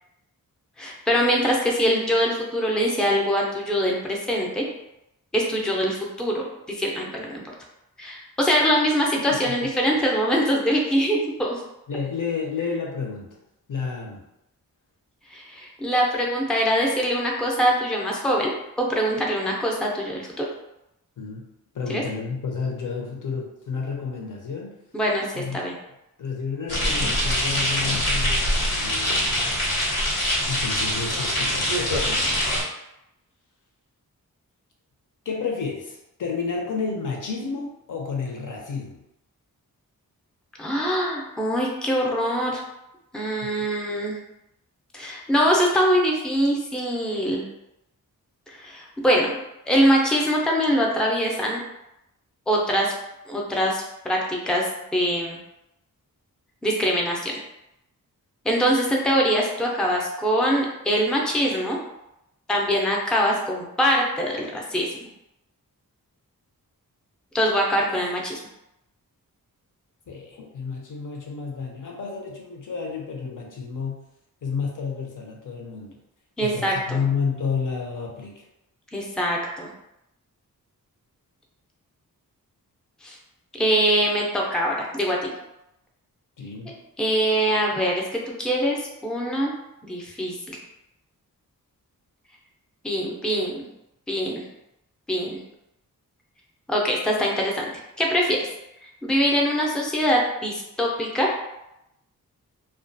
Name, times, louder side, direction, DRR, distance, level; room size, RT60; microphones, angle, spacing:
voice 1, 0.8-4.6 5.3-7.4 8.0-11.6 15.3-18.5 18.8-20.4 21.9-22.0 24.9-25.7 40.6-42.6 43.1-44.1 44.9-47.4 48.5-49.4 49.7-51.6 52.5-52.9 53.3-55.4 56.6-57.3 58.4-61.8 62.5-64.9 67.3-68.4 76.4-77.0 78.9-79.7 83.0-83.2 83.5-85.3 86.7-89.5 89.9-90.6 92.8-93.7 94.1-94.4 95.1-95.4 96.7-97.6 98.0-98.4 99.0-101.4, equal, ahead, -2 dB, 0.5 m, -23 dB
voice 2, 11.9-13.4 13.7-14.2 21.2-21.5 21.7-24.8 25.3-25.6 26.2-29.6 30.5-32.6 35.3-39.0 43.4-43.5 70.1-74.1 74.4-76.0 76.4-78.4 86.4-86.7, left 5 dB, 60° left, 0 dB, 0.7 m, -31 dB
sound 1, 26.7-32.6, equal, 85° left, 1.1 m, -24 dB
2.3 x 2.2 x 2.5 m, 0.86 s
cardioid pair, 65°, 36 cm